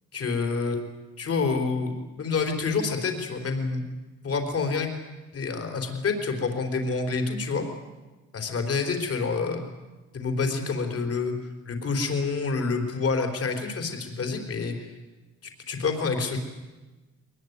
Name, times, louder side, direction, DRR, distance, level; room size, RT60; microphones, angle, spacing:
voice 1, 0.1-0.8 1.2-3.8 4.2-4.9 5.3-7.7 8.3-9.6 10.1-11.3 11.7-14.9 15.7-16.4, left 4 dB, 50° left, 4 dB, 4.2 m, -27 dB
21.5 x 21.0 x 9.6 m, 1.2 s
cardioid pair, 90°, 30 cm